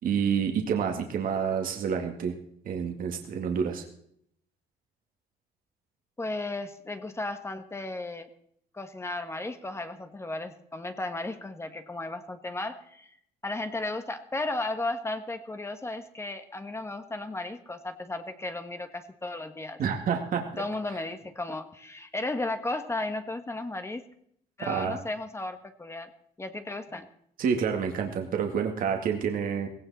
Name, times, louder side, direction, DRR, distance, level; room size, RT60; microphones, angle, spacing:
voice 1, 0.0-2.3 2.7-3.8 19.8-20.6 24.6-25.0 27.4-29.7, right 7 dB, 55° right, 3 dB, 2.2 m, -28 dB
voice 2, 6.2-8.3 8.7-13.1 13.4-19.8 20.6-24.0 24.6-26.1 26.4-27.1, left 2 dB, 15° left, 8 dB, 1.5 m, -34 dB
17.5 x 17.0 x 4.3 m, 0.68 s
cardioid pair, 110°, 17 cm